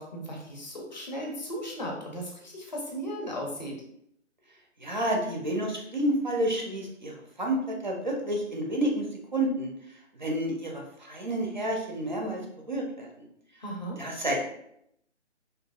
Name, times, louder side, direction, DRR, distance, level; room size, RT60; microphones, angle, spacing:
voice 1, 0.0-3.8 13.6-14.0, equal, 40° left, -1 dB, 0.5 m, -36 dB
voice 2, 4.8-7.1 7.4-9.0 9.3-9.7 10.2-13.1 14.0-14.4, right 1 dB, 40° right, 0 dB, 0.4 m, -29 dB
2.8 x 2.3 x 2.3 m, 0.73 s
hypercardioid pair, 165°, 36 cm